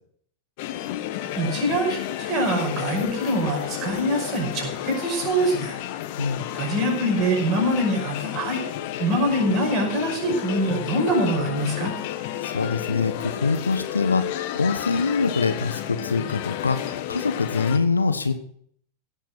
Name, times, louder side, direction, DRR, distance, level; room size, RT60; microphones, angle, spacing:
sound 1, 0.6-17.8, left 12 dB, 50° left, 1.2 m, -32 dB
voice 1, 1.3-5.8 6.5-8.6 9.0-11.9, right 1 dB, 35° right, 1 dB, 5.6 m, -24 dB
voice 2, 12.4-18.3, left 4 dB, 75° left, 9 dB, 1.1 m, -24 dB
16.5 x 8.1 x 6.1 m, 0.62 s
figure-of-eight pair, 90°, 0 cm